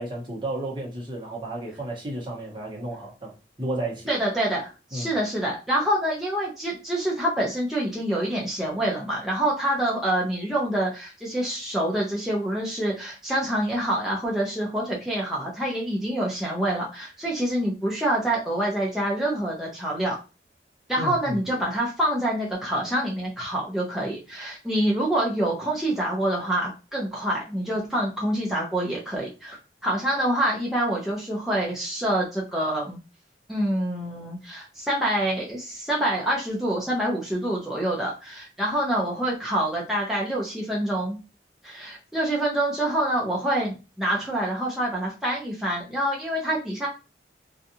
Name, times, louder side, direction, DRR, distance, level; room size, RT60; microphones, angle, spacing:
voice 1, 0.0-3.3 3.6-4.1 4.9-5.1 21.0-21.4, right 1 dB, 25° right, 0.9 m, -32 dB
voice 2, 4.1-20.2 20.9-29.6 29.8-33.0 33.5-41.2 41.6-46.9, right 1 dB, ahead, 0.5 m, -26 dB
2.6 x 2.3 x 2.7 m
head